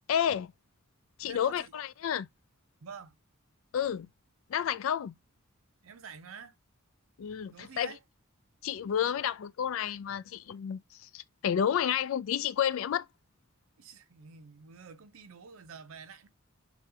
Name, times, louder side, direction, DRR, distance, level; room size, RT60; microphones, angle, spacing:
voice 1, 0.1-0.5 1.2-2.3 3.7-4.1 4.5-5.1 7.2-7.9 8.6-13.1, left 9 dB, 65° left, 0.3 m, -30 dB
voice 2, 1.3-1.7 2.8-3.2 5.8-6.6 7.5-8.0 13.8-16.3, right 6 dB, 75° right, 0.6 m, -48 dB
4.0 x 2.4 x 2.7 m
head